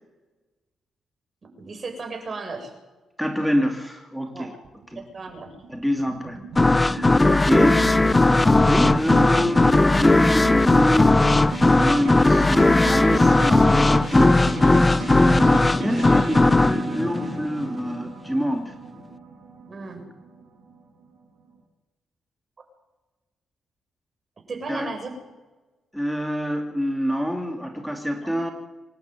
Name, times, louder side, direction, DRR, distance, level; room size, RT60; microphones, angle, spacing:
voice 1, 1.4-2.7 4.3-4.5 5.0-5.5 7.1-7.7 19.7-20.1 24.5-25.1 28.2-28.4, right 3 dB, 45° right, 4 dB, 7.3 m, -35 dB
voice 2, 3.2-4.5 4.9-5.0 5.7-7.8 8.2-14.3 14.8-18.7 24.7-24.9 25.9-28.5, equal, ahead, 3 dB, 2.9 m, -26 dB
sound 1, 4.6-21.0, right 4 dB, 70° right, 6.0 m, -34 dB
sound 2, 6.6-18.0, left 2 dB, 20° left, 0.7 m, -18 dB
25.5 x 11.5 x 9.4 m, 1.2 s
hypercardioid pair, 45°, 0 cm